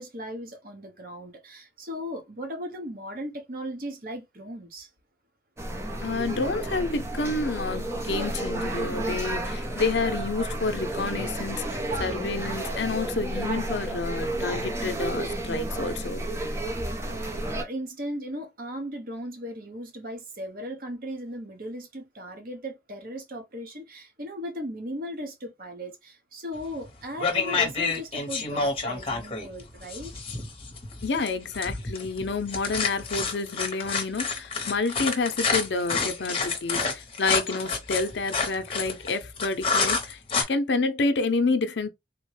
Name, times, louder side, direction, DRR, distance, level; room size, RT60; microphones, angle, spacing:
voice 1, 0.0-4.9 17.1-30.1, equal, 50° right, 0.9 m, -37 dB
sound 1, 5.6-17.6, right 1 dB, 15° right, 0.6 m, -31 dB
voice 2, 6.0-16.2 31.0-40.2 40.5-41.9, left 3 dB, 70° left, 0.6 m, -29 dB
sound 2, 26.6-26.9 27.2-40.4, left 4 dB, 30° left, 0.9 m, -28 dB
3.7 x 2.1 x 3.1 m
head